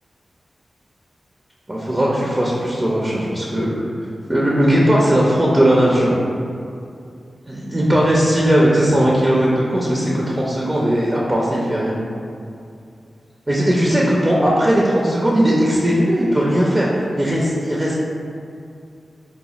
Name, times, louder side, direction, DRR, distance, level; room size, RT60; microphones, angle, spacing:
voice 1, 1.7-3.9 4.3-6.1 7.5-11.9 13.5-16.9 17.1-17.9, equal, 30° right, -5 dB, 0.5 m, -18 dB
4.0 x 2.1 x 2.9 m, 2.5 s
cardioid pair, 45°, 0 cm